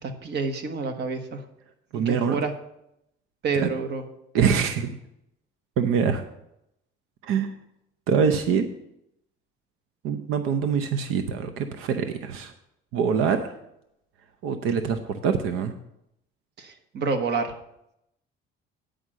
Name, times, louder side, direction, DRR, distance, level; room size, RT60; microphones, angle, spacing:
voice 1, 0.0-1.4 1.9-2.5 3.4-4.0 16.6-17.5, right 4 dB, 55° right, 6 dB, 1.2 m, -28 dB
voice 2, 1.9-2.4 3.6-3.7 4.3-5.0 5.8-6.2 7.2-7.5 8.1-8.6 10.0-12.5 12.9-13.4 14.4-15.7, right 6 dB, 90° right, 8 dB, 0.7 m, -24 dB
9.7 x 5.1 x 7.4 m, 0.81 s
cardioid pair, 120°, 21 cm